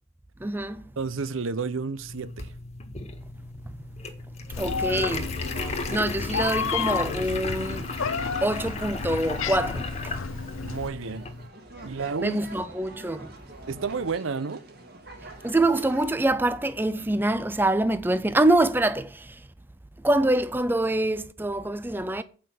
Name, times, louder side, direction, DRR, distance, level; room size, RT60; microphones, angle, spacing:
voice 1, 0.4-0.8 4.6-5.3 5.9-7.9 8.4-10.1 12.2-13.3 15.4-19.3 20.0-22.2, right 1 dB, 10° right, 0.4 m, -25 dB
voice 2, 1.0-2.5 10.6-11.3 11.8-12.4 13.7-14.6, right 4 dB, 80° right, 0.7 m, -31 dB
sound 1, 2.0-11.5, left 3 dB, 30° left, 1.4 m, -36 dB
Meow, 4.5-10.9, left 5 dB, 85° left, 0.7 m, -31 dB
sound 2, 5.0-16.3, right 1 dB, 50° right, 2.0 m, -46 dB
8.7 x 5.3 x 7.6 m
head